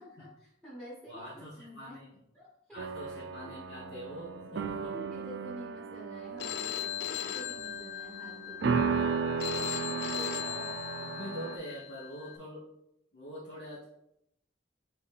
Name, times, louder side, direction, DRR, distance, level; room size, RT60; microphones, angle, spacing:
voice 1, 0.0-2.0 2.3-2.8 3.4-3.5 4.9-9.2 9.9-10.8 11.4-11.6, equal, 5° left, -5 dB, 1.0 m, -49 dB
voice 2, 1.1-2.2 2.7-4.9 10.1-12.7 13.1-13.8, equal, 80° left, -8 dB, 1.2 m, -44 dB
sound 1, 2.8-11.6, right 5 dB, 75° right, 0.4 m, -35 dB
Telephone, 6.4-12.4, left 12 dB, 65° left, 0.3 m, -38 dB
4.7 x 3.2 x 3.4 m, 0.80 s
head